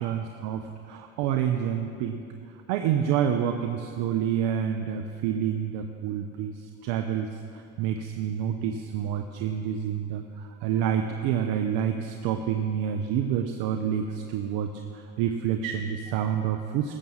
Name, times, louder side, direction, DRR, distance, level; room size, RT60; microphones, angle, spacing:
voice 1, 0.0-2.2 2.7-17.0, right 9 dB, 65° right, 5 dB, 0.9 m, -28 dB
16.5 x 7.1 x 6.4 m, 2.5 s
supercardioid pair, 95°, 39 cm